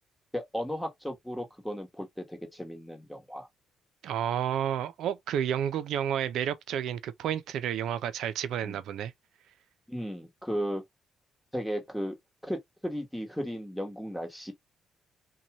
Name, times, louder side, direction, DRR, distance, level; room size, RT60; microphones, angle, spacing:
voice 1, 0.3-3.5 8.6-8.8 9.9-10.8 11.5-12.2 12.4-14.5, equal, 5° left, 1.1 m, -35 dB
voice 2, 4.0-9.1, right 9 dB, 80° right, 0.4 m, -31 dB
2.6 x 2.2 x 2.8 m
cardioid pair, 90°, 0 cm